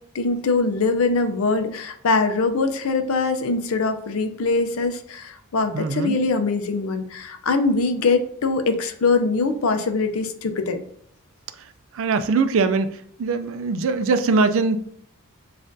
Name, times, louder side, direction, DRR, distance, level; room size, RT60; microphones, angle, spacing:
voice 1, 0.1-10.8, left 3 dB, 70° left, 8 dB, 0.5 m, -22 dB
voice 2, 5.7-6.2 11.9-12.9 13.2-14.8, right 4 dB, 65° right, 11 dB, 0.4 m, -21 dB
7.1 x 2.5 x 2.6 m, 0.65 s
head